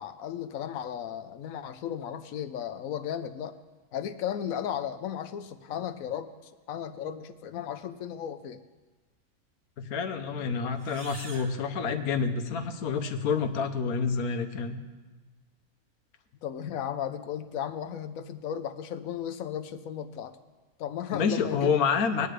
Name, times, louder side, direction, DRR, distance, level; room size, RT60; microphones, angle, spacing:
voice 1, 0.0-3.6 3.9-8.6 16.4-20.3 20.8-21.7, left 9 dB, 70° left, 11 dB, 1.1 m, -35 dB
voice 2, 9.8-14.8 21.1-22.3, left 5 dB, 90° left, 7 dB, 1.4 m, -28 dB
sound 1, 10.7-12.6, right 3 dB, 70° right, 1.6 m, -48 dB
20.5 x 9.5 x 3.3 m, 1.3 s
omnidirectional pair, 1.5 m